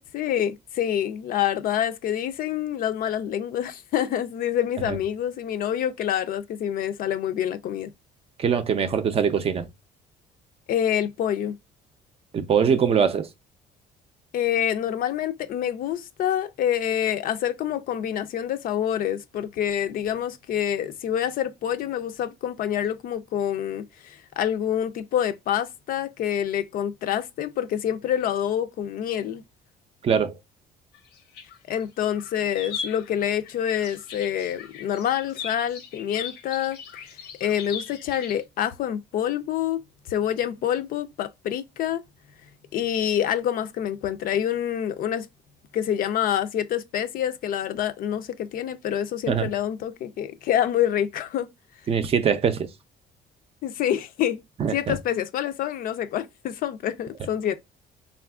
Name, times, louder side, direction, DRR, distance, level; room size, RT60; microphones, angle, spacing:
voice 1, 0.1-7.9 10.7-11.6 14.3-29.4 31.7-36.8 37.4-39.8 40.1-42.0 42.7-45.3 45.7-51.5 53.6-54.4 54.7-57.6, left 10 dB, 55° left, 0.4 m, -27 dB
voice 2, 8.4-9.7 12.3-13.3 30.0-30.4 49.3-49.5 51.9-52.7 54.6-54.9, right 7 dB, 35° right, 0.4 m, -22 dB
sound 1, 30.9-31.8 32.1-38.4, left 6 dB, 85° left, 0.7 m, -39 dB
3.5 x 2.4 x 2.2 m
cardioid pair, 110°, 17 cm